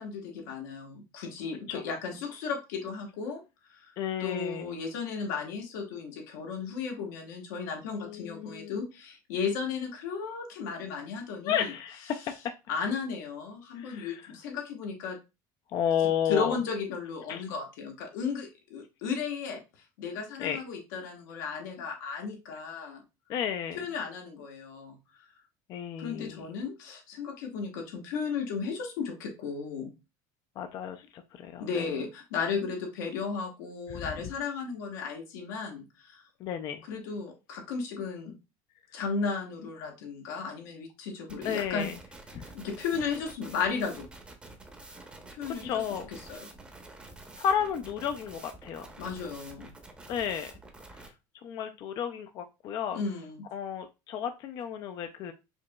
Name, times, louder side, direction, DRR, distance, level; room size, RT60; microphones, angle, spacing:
voice 1, 0.0-3.9 4.2-11.7 12.7-15.2 16.3-19.6 20.0-23.0 23.7-25.0 26.0-29.9 31.6-36.2 36.9-38.3 38.9-41.9 42.5-44.1 45.4-45.8 46.1-46.5 49.0-49.7 52.9-53.5, left 5 dB, 85° left, 1 dB, 1.3 m, -35 dB
voice 2, 4.0-4.8 7.9-8.8 11.4-12.3 13.7-14.2 15.7-16.6 17.3-17.4 20.4-20.6 23.3-23.8 25.7-26.4 30.6-32.0 33.9-34.1 36.4-36.8 41.4-41.9 42.3-42.5 45.6-46.1 47.4-48.9 50.1-50.5 51.4-53.0 53.5-55.3, left 9 dB, 40° left, 7 dB, 0.3 m, -32 dB
sound 1, 41.3-51.1, right 2 dB, 10° right, 0.7 m, -48 dB
5.0 x 2.9 x 2.2 m, 0.26 s
cardioid pair, 140°, 10 cm